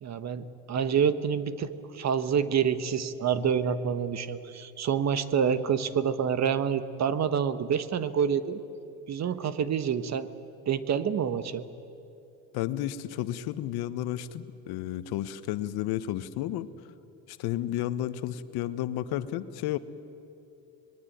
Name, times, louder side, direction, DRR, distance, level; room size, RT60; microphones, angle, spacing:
voice 1, 0.0-8.6 9.1-10.3 10.6-11.6, right 7 dB, 40° right, 12 dB, 1.4 m, -27 dB
voice 2, 12.5-16.7 17.3-19.8, left 13 dB, 65° left, 13 dB, 1.2 m, -32 dB
25.5 x 21.0 x 9.4 m, 2.7 s
supercardioid pair, 85°, 41 cm